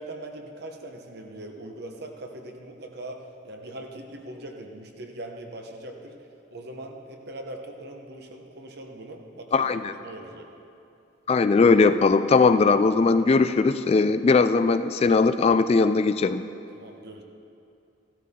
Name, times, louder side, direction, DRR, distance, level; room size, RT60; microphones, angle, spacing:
voice 1, 0.0-6.2 6.5-10.5 16.7-17.2, right 1 dB, 60° right, 2 dB, 1.1 m, -41 dB
voice 2, 9.5-9.9 11.3-16.4, left 4 dB, 35° left, 11 dB, 0.3 m, -19 dB
14.5 x 12.0 x 3.7 m, 2.6 s
head